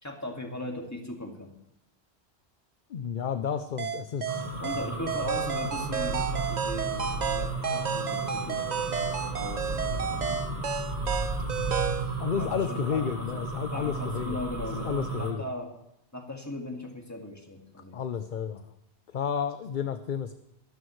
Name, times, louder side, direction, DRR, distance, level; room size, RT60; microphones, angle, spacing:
voice 1, 0.0-1.5 4.6-8.7 9.3-10.7 12.3-13.4 13.7-15.7 16.1-18.0, left 1 dB, 15° left, 1 dB, 1.9 m, -38 dB
voice 2, 2.9-4.5 12.2-15.5 17.9-18.7 19.1-20.3, left 7 dB, 55° left, 10 dB, 0.7 m, -31 dB
sound 1, 3.8-12.1, right 7 dB, 45° right, 0.8 m, -31 dB
sound 2, 4.3-15.3, right 2 dB, 70° right, 2.2 m, -34 dB
23.0 x 13.0 x 3.2 m, 0.81 s
omnidirectional pair, 1.1 m